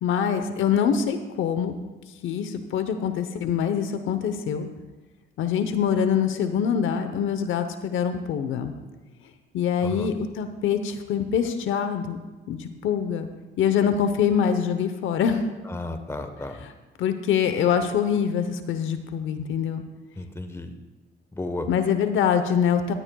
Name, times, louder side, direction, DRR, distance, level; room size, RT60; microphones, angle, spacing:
voice 1, 0.0-1.7 2.2-4.7 5.4-8.7 9.5-12.2 12.5-13.3 13.6-15.5 16.6-16.7 17.0-19.8 21.7-22.9, left 8 dB, 80° left, 9 dB, 0.9 m, -24 dB
voice 2, 15.7-16.6 20.2-20.7 21.3-21.7, left 2 dB, 15° left, 7 dB, 1.1 m, -33 dB
16.0 x 12.0 x 2.3 m, 1.2 s
cardioid pair, 90°, 20 cm